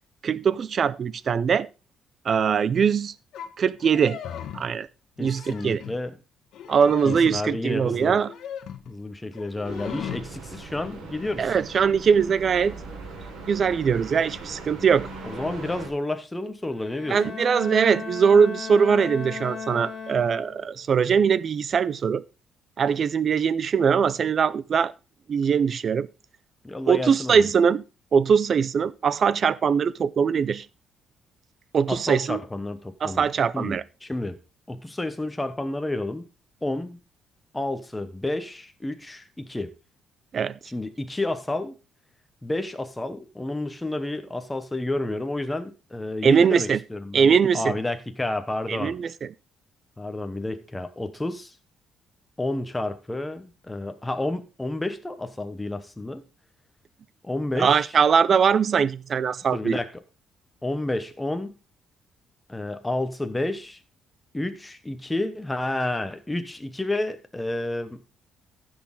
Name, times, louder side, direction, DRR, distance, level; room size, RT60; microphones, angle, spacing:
voice 1, 0.2-1.7 2.3-3.1 3.6-4.2 4.5-4.9 5.2-5.8 6.7-8.3 11.4-12.8 13.5-15.1 17.1-22.2 22.8-24.9 25.3-26.1 26.9-27.8 28.1-30.7 31.7-32.4 33.0-33.8 40.3-40.6 46.2-46.8 47.1-47.7 48.7-49.3 57.6-59.8, right 6 dB, 35° right, 0.4 m, -21 dB
sound 1, 3.3-3.5 3.8-4.7 5.2-6.1 6.5-7.5 8.2-9.0 9.3-10.3, left 9 dB, 65° left, 1.2 m, -37 dB
voice 2, 5.2-6.2 7.0-8.2 8.9-11.5 15.2-17.4 26.6-27.4 31.9-33.3 33.5-34.4 34.7-36.2 36.6-37.0 37.5-39.7 40.6-41.8 42.4-48.9 50.0-51.5 52.4-56.3 57.2-57.9 59.5-59.9 60.6-61.6 62.5-63.8 64.3-68.0, left 2 dB, 10° left, 0.9 m, -30 dB
sound 2, 9.6-15.9, right 3 dB, 80° right, 3.2 m, -40 dB
Bowed string instrument, 16.7-20.8, left 5 dB, 40° left, 1.9 m, -36 dB
14.5 x 6.3 x 3.7 m
cardioid pair, 165°, 0 cm